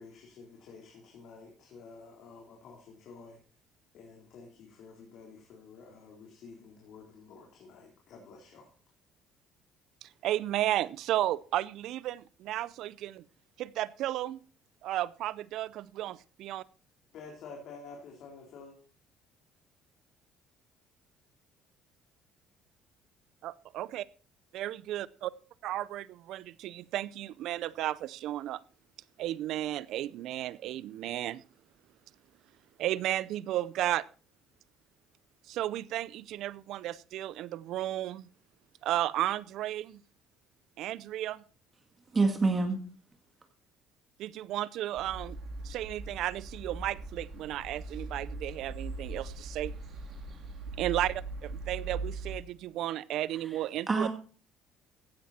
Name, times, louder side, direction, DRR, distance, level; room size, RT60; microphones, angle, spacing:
voice 1, 0.0-3.4 3.9-8.7 17.1-18.7, left 4 dB, 65° left, 3.8 m, -50 dB
voice 2, 10.0-13.2 13.6-14.4 14.8-16.6 23.4-24.1 24.5-25.3 25.6-28.6 29.2-31.4 32.8-34.1 35.5-38.3 38.8-40.0 40.8-41.4 44.2-45.4 45.6-49.7 50.8-54.1, right 13 dB, 70° right, 0.5 m, -33 dB
voice 3, 42.1-42.8 53.9-54.1, right 3 dB, 25° right, 1.9 m, -26 dB
sound 1, 45.0-52.4, right 3 dB, 55° right, 4.1 m, -40 dB
15.5 x 9.5 x 4.3 m
cardioid pair, 115°, 0 cm